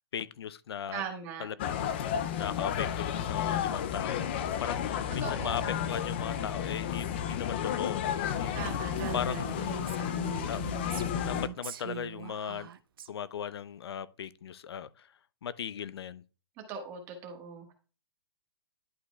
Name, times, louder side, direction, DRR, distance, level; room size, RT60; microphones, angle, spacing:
voice 1, 0.0-1.0 1.4-1.9 2.4-4.3 4.6-8.6 9.1-9.5 10.5-10.6 11.2-12.7 13.1-15.1 15.4-16.2, left 8 dB, 70° left, 0.5 m, -38 dB
voice 2, 0.9-1.5 5.2-5.8 8.5-9.4 16.7-17.7, right 6 dB, 20° right, 1.4 m, -40 dB
sound 1, 1.6-11.5, left 9 dB, 25° left, 0.4 m, -32 dB
Female speech woman speaking, 8.9-13.1, right 11 dB, 55° right, 0.6 m, -41 dB
11.0 x 4.8 x 2.3 m
hypercardioid pair, 175°, 14 cm